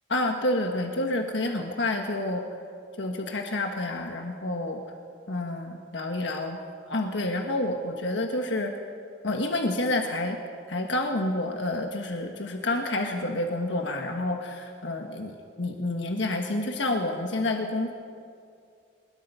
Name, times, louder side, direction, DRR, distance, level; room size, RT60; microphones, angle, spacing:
voice 1, 0.1-2.4 3.0-4.8 5.3-6.6 6.9-8.7 9.2-10.4 10.7-17.9, left 2 dB, 70° left, 3 dB, 1.4 m, -29 dB
22.0 x 21.0 x 5.6 m, 2.4 s
head